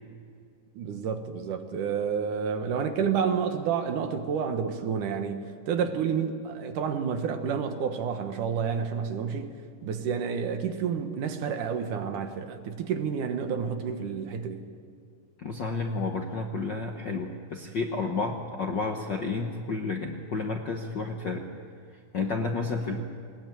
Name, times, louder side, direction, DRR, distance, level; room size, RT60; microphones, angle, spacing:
voice 1, 0.8-5.4 5.7-9.5 9.8-14.6, right 6 dB, 75° right, 7 dB, 2.9 m, -29 dB
voice 2, 15.4-21.5 22.1-23.0, left 3 dB, 55° left, 2 dB, 1.2 m, -31 dB
20.5 x 19.0 x 9.3 m, 2.3 s
omnidirectional pair, 3.7 m